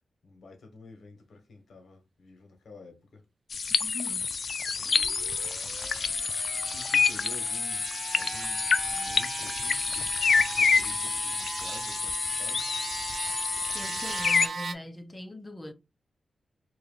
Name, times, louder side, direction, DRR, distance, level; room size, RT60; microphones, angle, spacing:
voice 1, 0.2-3.2 6.7-12.6, left 3 dB, 70° left, 1.4 m, -50 dB
sound 1, 3.5-14.5, left 5 dB, 55° left, 0.3 m, -28 dB
voice 2, 3.8-4.3 13.7-15.7, left 2 dB, 20° left, 0.7 m, -41 dB
sound 2, 4.8-14.7, right 4 dB, 55° right, 0.4 m, -39 dB
3.0 x 3.0 x 3.9 m
wide cardioid pair, 105°, 0 cm